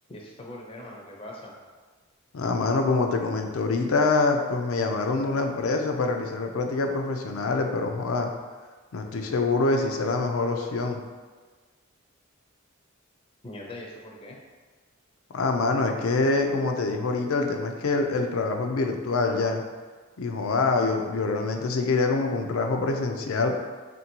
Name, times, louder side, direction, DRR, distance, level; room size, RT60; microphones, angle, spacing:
voice 1, 0.1-1.5 13.4-14.4, left 1 dB, 25° left, -1 dB, 0.5 m, -41 dB
voice 2, 2.3-8.3 8.9-11.0 15.3-19.6 20.2-23.5, left 3 dB, 85° left, 4 dB, 0.5 m, -25 dB
3.7 x 2.6 x 4.4 m, 1.4 s
head